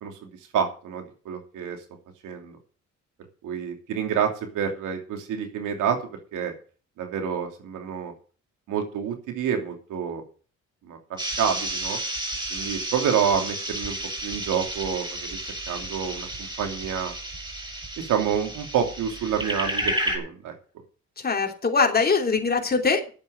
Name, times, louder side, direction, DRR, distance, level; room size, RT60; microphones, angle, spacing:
voice 1, 0.0-1.8 2.2-2.6 3.4-6.0 6.3-6.5 7.0-8.1 8.7-10.2 10.9-12.0 12.5-13.9 14.2-15.4 15.7-16.3 16.6-17.1 18.1-20.5, right 8 dB, 85° right, 4 dB, 2.9 m, -28 dB
sound 1, 11.2-20.2, right 1 dB, 15° right, 6.3 m, -32 dB
voice 2, 21.2-23.1, left 4 dB, 30° left, 3 dB, 3.0 m, -22 dB
10.5 x 7.9 x 7.9 m, 0.39 s
cardioid pair, 90°, 30 cm